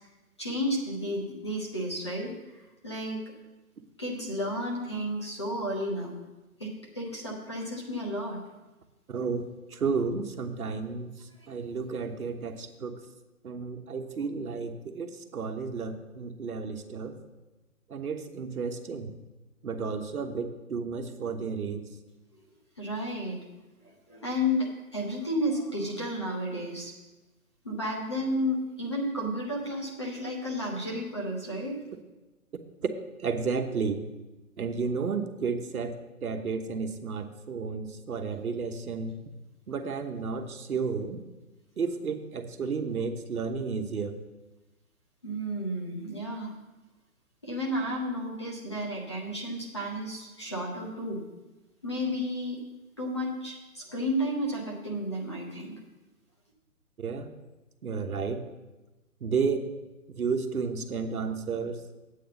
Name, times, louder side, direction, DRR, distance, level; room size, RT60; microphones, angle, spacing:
voice 1, 0.4-3.2 4.0-6.1 6.6-8.4 11.4-11.5 22.8-23.4 24.1-26.9 27.6-31.8 45.2-46.5 47.4-51.2 51.8-52.6 53.0-55.7, equal, 20° left, -2 dB, 0.9 m, -32 dB
voice 2, 9.1-9.5 9.7-11.1 11.5-13.0 13.4-17.2 17.9-19.1 19.6-21.8 32.8-32.9 33.2-34.0 34.6-36.0 36.2-39.1 39.7-41.2 41.8-44.2 57.0-57.3 57.8-58.4 59.2-59.7 60.2-61.8, right 5 dB, 75° right, 7 dB, 1.2 m, -32 dB
10.0 x 8.4 x 4.0 m, 1.1 s
hypercardioid pair, 180°, 44 cm